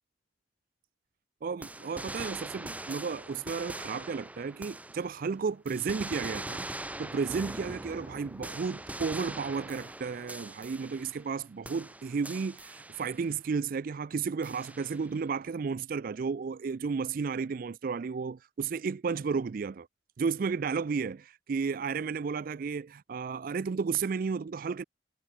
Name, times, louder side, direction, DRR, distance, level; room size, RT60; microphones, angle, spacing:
voice 1, 1.4-19.9 20.2-21.2 21.5-24.8, right 5 dB, 50° right, 0.4 m, -33 dB
sound 1, 1.6-5.3 5.7-11.4 11.6-13.3 14.4-15.2, right 1 dB, 10° right, 1.0 m, -42 dB
head